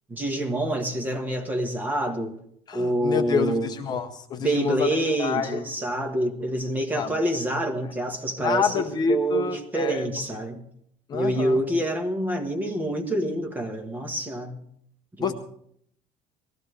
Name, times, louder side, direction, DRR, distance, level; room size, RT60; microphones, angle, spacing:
voice 1, 0.1-2.4 2.7-3.8 4.4-10.6 11.1-14.6 15.2-15.3, right 1 dB, 10° right, 1.4 m, -27 dB
voice 2, 2.7-5.6 6.9-7.2 8.4-10.1 11.1-11.6 15.2-15.3, left 6 dB, 30° left, 0.8 m, -27 dB
19.0 x 14.5 x 3.3 m
cardioid pair, 175°, 14 cm